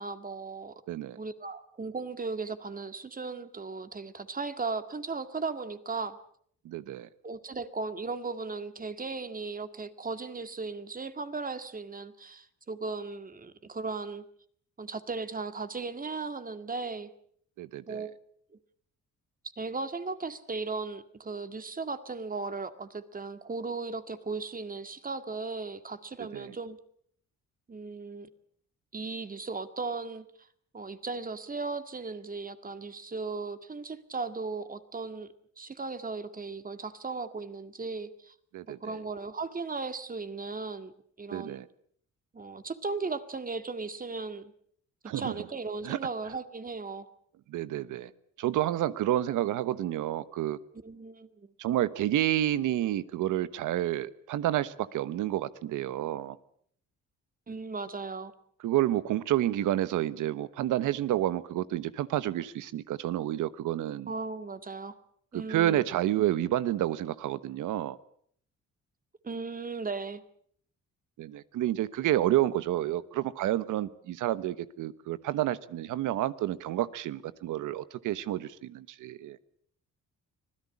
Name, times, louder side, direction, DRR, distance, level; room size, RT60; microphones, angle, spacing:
voice 1, 0.0-0.7 1.2-6.2 7.2-14.2 14.8-17.1 17.9-18.1 19.6-26.8 27.7-28.3 28.9-30.3 30.7-35.3 35.6-38.3 38.7-40.9 41.2-41.6 42.3-44.5 45.1-47.1 50.8-51.5 57.5-58.3 64.1-64.9 65.3-65.9 69.2-70.2, right 4 dB, 30° right, 2.1 m, -36 dB
voice 2, 0.9-1.2 6.6-7.1 17.6-18.1 26.3-26.5 38.5-38.9 41.3-41.7 45.0-45.3 45.8-46.0 47.5-48.1 48.4-50.6 51.6-56.4 58.6-64.1 65.3-68.0 71.2-79.4, right 13 dB, 85° right, 1.2 m, -29 dB
25.5 x 16.5 x 8.6 m
cardioid pair, 90°, 30 cm